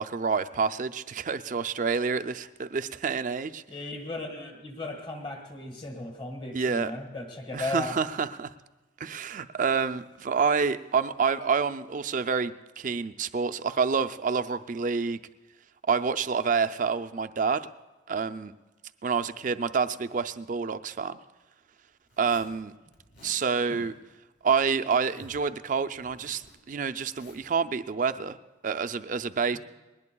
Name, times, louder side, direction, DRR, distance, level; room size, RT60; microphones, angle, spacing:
voice 1, 0.0-3.6 6.5-6.9 7.5-8.5 9.0-15.2 15.9-17.7 18.1-18.5 19.0-21.2 22.2-22.7 23.2-23.9 24.4-28.4 28.6-29.6, right 5 dB, 40° right, 11 dB, 0.4 m, -28 dB
voice 2, 3.7-8.0 23.7-23.9 29.5-29.6, left 2 dB, 25° left, 2 dB, 1.6 m, -36 dB
Zipper (clothing), 22.1-22.6 22.9-23.5 24.4-25.5 25.8-27.5, left 1 dB, 60° left, 2.2 m, -55 dB
20.5 x 19.5 x 2.3 m, 1.1 s
head